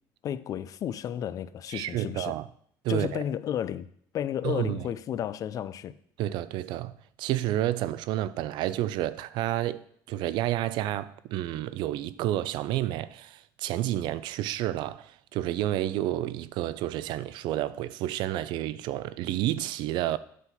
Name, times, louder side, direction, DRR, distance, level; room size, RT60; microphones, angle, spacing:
voice 1, 0.2-2.4 2.9-3.9 4.1-5.9, left 10 dB, 45° left, 0.4 m, -32 dB
voice 2, 1.7-2.5 2.8-3.2 4.4-4.8 6.2-20.2, right 13 dB, 70° right, 0.4 m, -30 dB
8.3 x 3.9 x 5.9 m
cardioid pair, 115°, 8 cm